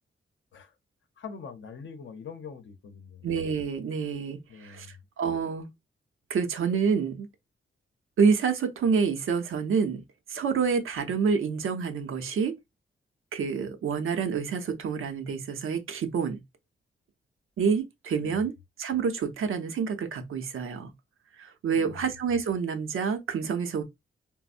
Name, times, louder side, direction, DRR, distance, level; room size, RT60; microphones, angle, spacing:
voice 1, 1.2-3.3 4.5-5.0 18.2-18.4 21.7-22.0, left 6 dB, 65° left, 0.7 m, -43 dB
voice 2, 3.2-4.9 5.2-5.7 6.3-7.3 8.2-10.0 10.3-12.5 13.3-16.4 17.6-18.5 18.8-20.9 21.4-23.8, right 6 dB, 90° right, 0.6 m, -27 dB
4.0 x 2.0 x 2.4 m
wide cardioid pair, 125°, 21 cm